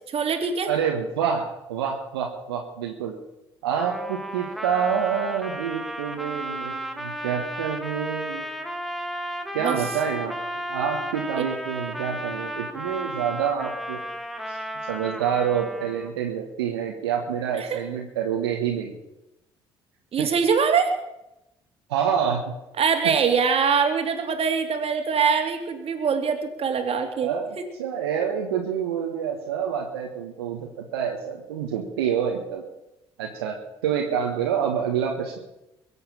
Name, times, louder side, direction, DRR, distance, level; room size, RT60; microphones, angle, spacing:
voice 1, 0.1-0.7 9.6-9.8 17.5-17.8 20.1-20.9 22.8-27.3, right 6 dB, 50° right, 6 dB, 2.8 m, -23 dB
voice 2, 0.7-3.1 3.6-8.5 9.5-10.3 10.7-14.0 14.5-14.6 14.9-18.9 20.2-20.3 21.9-22.5 23.0-23.1 27.2-32.6 33.2-33.5 33.8-35.4, right 8 dB, 85° right, 1 dB, 1.6 m, -27 dB
Trumpet, 3.8-16.2, equal, ahead, 2.2 m, -34 dB
22.5 x 7.9 x 7.4 m, 0.92 s
hypercardioid pair, 55°, 13 cm